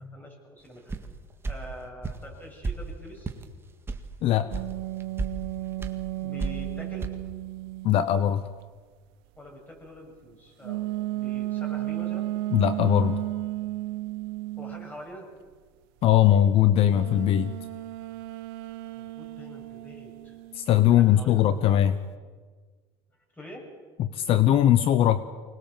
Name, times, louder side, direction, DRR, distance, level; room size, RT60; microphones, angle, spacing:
voice 1, 0.1-1.0 1.5-3.3 6.2-7.1 9.4-12.3 14.6-15.3 19.0-20.4 20.9-21.8 23.3-23.7, equal, 15° left, 1 dB, 7.4 m, -45 dB
sound 1, 0.9-1.1 1.4-1.6 2.0-2.2 2.6-2.8 3.2-3.4 3.9-4.0 4.5-4.7 5.0-5.3 5.8-6.0 6.4-6.7 7.0-7.1, right 3 dB, 20° right, 1.8 m, -31 dB
sound 2, 4.5-8.3 10.6-15.0 16.9-20.7, right 16 dB, 85° right, 0.7 m, -34 dB
voice 2, 7.8-8.4 12.5-13.2 16.0-17.5 20.5-21.9 24.0-25.2, left 11 dB, 50° left, 13 dB, 1.0 m, -20 dB
24.5 x 20.0 x 7.4 m, 1.5 s
supercardioid pair, 115°, 12 cm